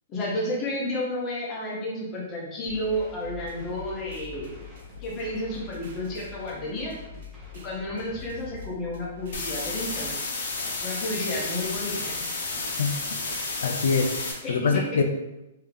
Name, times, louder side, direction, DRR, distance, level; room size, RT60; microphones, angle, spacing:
voice 1, 0.1-4.5 5.0-6.9 7.6-10.2 10.8-12.0 14.4-14.8, left 1 dB, 20° left, -4 dB, 0.8 m, -31 dB
sound 1, 2.6-8.7, left 2 dB, 10° right, 0.7 m, -46 dB
sound 2, 3.3-10.1, left 9 dB, 60° right, 0.5 m, -47 dB
sound 3, 9.3-14.3, left 3 dB, 55° left, 0.8 m, -31 dB
voice 2, 13.6-15.0, left 4 dB, 75° left, 4 dB, 0.4 m, -24 dB
3.5 x 2.8 x 3.4 m, 0.95 s
hypercardioid pair, 175°, 0 cm